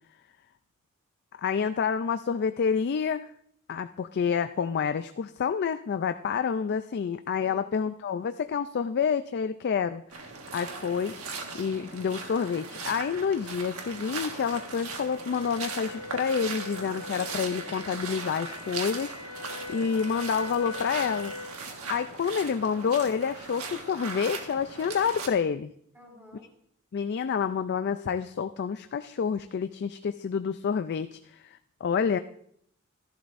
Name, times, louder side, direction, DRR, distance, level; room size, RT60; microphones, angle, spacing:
voice 1, 1.3-3.3 3.7-10.0 10.5-11.1 11.5-25.7 26.9-32.2, left 6 dB, 50° left, 10 dB, 0.3 m, -28 dB
voice 2, 7.4-7.9 25.9-26.5 31.9-32.2, right 1 dB, 10° right, -3 dB, 4.0 m, -50 dB
sound 1, 10.1-25.3, right 4 dB, 90° right, 1.5 m, -39 dB
sound 2, 11.7-21.6, left 3 dB, 90° left, 0.7 m, -43 dB
14.0 x 11.5 x 2.5 m, 0.67 s
head